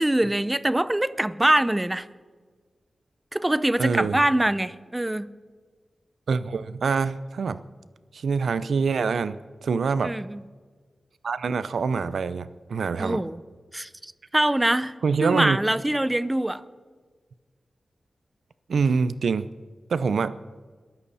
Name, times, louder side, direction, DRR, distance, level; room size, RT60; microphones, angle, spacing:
voice 1, 0.0-2.1 3.3-5.3 10.0-10.4 13.0-13.4 13.7-14.9 15.2-16.6, right 1 dB, 10° right, 16 dB, 0.5 m, -24 dB
voice 2, 3.8-4.2 6.3-7.6 8.1-10.1 11.2-13.2 15.0-15.6 18.7-19.5 19.9-20.4, right 5 dB, 75° right, 14 dB, 0.6 m, -25 dB
22.0 x 13.0 x 4.2 m, 1.5 s
wide cardioid pair, 155°, 0 cm